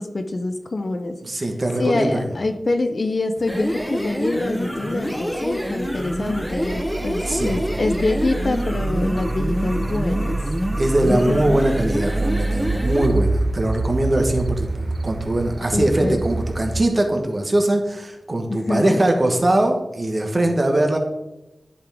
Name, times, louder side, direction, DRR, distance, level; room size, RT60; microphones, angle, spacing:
voice 1, 0.0-1.2 1.8-10.4 11.1-11.4 15.7-16.2 18.5-19.0, left 2 dB, 55° left, 8 dB, 0.5 m, -25 dB
voice 2, 1.2-2.3 7.3-7.6 10.8-21.0, right 1 dB, 40° right, 3 dB, 1.2 m, -21 dB
sound 1, 3.4-13.2, equal, ahead, 0.9 m, -27 dB
sound 2, 5.6-16.9, right 2 dB, 65° right, 0.3 m, -27 dB
11.0 x 3.7 x 3.5 m, 0.97 s
cardioid pair, 55°, 0 cm